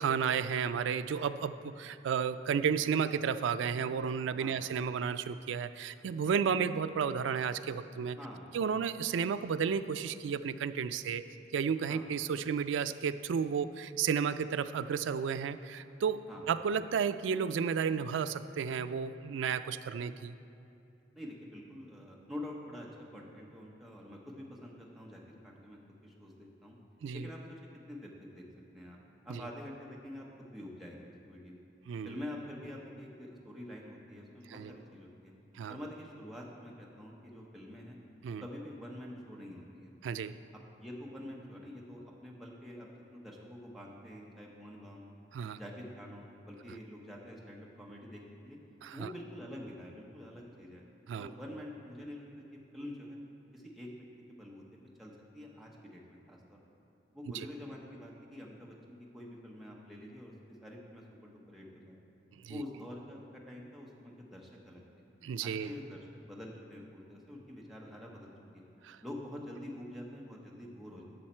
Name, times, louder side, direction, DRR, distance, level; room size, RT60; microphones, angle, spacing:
voice 1, 0.0-8.2 8.5-11.2 11.5-20.3 27.0-27.2 29.3-29.4 31.9-32.1 34.5-34.7 35.6-35.8 38.2-38.4 40.0-40.3 45.3-45.6 48.8-49.1 51.1-51.3 62.4-62.6 65.2-65.7 68.8-69.0, right 6 dB, 80° right, 12 dB, 0.3 m, -32 dB
voice 2, 4.4-4.7 8.1-8.5 11.9-12.1 16.3-16.5 21.1-26.8 27.1-27.6 27.9-28.4 28.7-29.0 29.2-31.6 32.0-35.3 35.7-38.0 38.4-39.9 40.8-45.2 45.5-48.6 48.9-50.8 51.2-53.2 53.5-53.9 54.3-54.6 55.0-56.6 57.1-60.3 60.6-62.0 62.5-65.0 65.4-68.7 69.0-71.0, left 1 dB, ahead, -3 dB, 1.0 m, -47 dB
12.0 x 6.4 x 4.4 m, 2.7 s
head